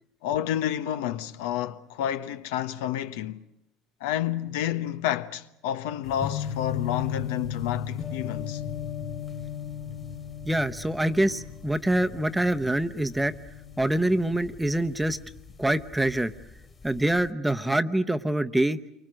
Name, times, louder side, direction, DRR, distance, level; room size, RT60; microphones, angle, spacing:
voice 1, 0.2-3.4 4.0-8.6, left 11 dB, 85° left, 1.0 m, -30 dB
sound 1, 6.0-16.1 16.4-17.2, left 8 dB, 25° left, 2.0 m, -36 dB
voice 2, 10.4-13.3 13.8-15.2 15.6-16.3 16.8-18.8, right 1 dB, 5° right, 0.9 m, -25 dB
28.5 x 24.5 x 6.4 m
supercardioid pair, 125°, 0 cm